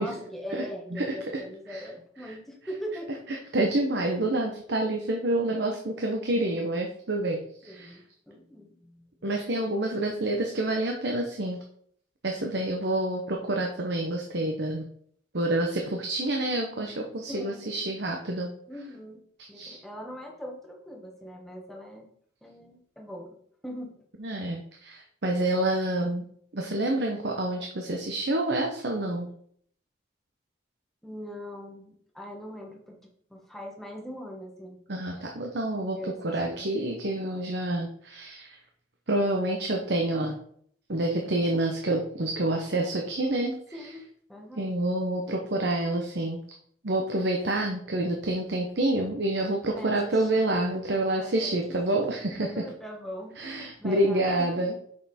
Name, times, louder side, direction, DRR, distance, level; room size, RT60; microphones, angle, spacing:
voice 1, 0.0-3.1 7.6-9.3 17.3-17.7 18.7-19.2 19.5-22.1 22.4-24.0 24.3-24.4 27.6-27.7 31.0-33.0 33.3-34.8 35.9-36.7 43.7-44.0 44.3-44.7 49.7-50.5 51.2-51.8 52.3-54.8, equal, ahead, 0 dB, 1.4 m, -41 dB
voice 2, 0.9-1.4 1.7-1.8 2.2-2.3 3.3-8.0 9.2-11.6 12.2-14.8 15.3-18.5 19.5-19.8 24.2-26.2 26.5-29.3 34.9-38.5 39.1-40.4 40.9-43.9 44.6-46.4 46.8-52.5 53.4-54.8, right 1 dB, 65° right, 1 dB, 0.9 m, -28 dB
6.4 x 5.9 x 4.3 m, 0.64 s
head